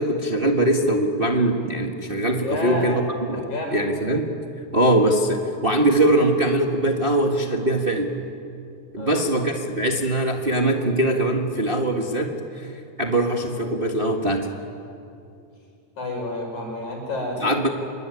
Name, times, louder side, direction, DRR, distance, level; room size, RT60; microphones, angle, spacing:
voice 1, 0.0-3.0 3.3-3.4 3.7-4.3 4.7-8.1 8.9-12.7 13.0-14.5 17.4-17.7, right 1 dB, 25° right, 2 dB, 1.2 m, -22 dB
voice 2, 2.4-2.9 3.3-3.8 9.0-9.3 16.0-17.7, left 2 dB, 90° left, 1 dB, 7.1 m, -30 dB
26.0 x 22.5 x 9.7 m, 2.5 s
omnidirectional pair, 3.3 m